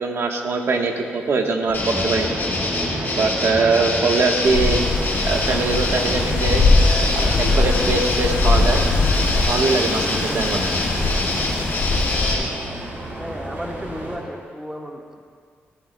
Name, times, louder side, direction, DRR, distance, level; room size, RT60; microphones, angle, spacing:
voice 1, 0.0-2.4 3.2-4.8 5.2-6.7 7.1-8.8 9.3-10.6, right 4 dB, 70° right, 3 dB, 1.2 m, -22 dB
sound 1, 1.7-12.4, left 2 dB, 50° left, 3.1 m, -25 dB
sound 2, 1.7-14.2, right 1 dB, 50° right, 3.7 m, -32 dB
Wind, 4.4-12.3, left 3 dB, 85° left, 2.5 m, -21 dB
voice 2, 13.2-15.2, equal, 10° right, 0 dB, 1.5 m, -33 dB
19.0 x 14.5 x 2.2 m, 2.1 s
cardioid pair, 95°, 4 cm